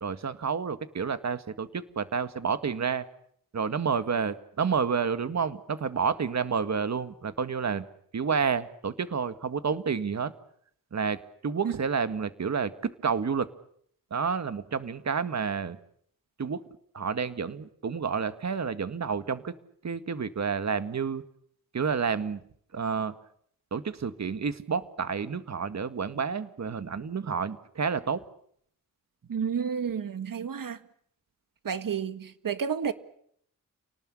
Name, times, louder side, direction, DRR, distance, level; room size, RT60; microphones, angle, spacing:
voice 1, 0.0-3.1 3.5-7.8 8.1-10.3 10.9-13.5 14.1-15.8 16.4-16.6 16.9-19.5 19.8-21.2 21.7-22.4 22.7-23.1 23.7-28.2, right 6 dB, 50° right, 1.9 m, -29 dB
voice 2, 29.3-30.8 31.6-32.9, right 7 dB, 65° right, 1.9 m, -30 dB
30.0 x 19.0 x 9.9 m
wide cardioid pair, 130°, 35 cm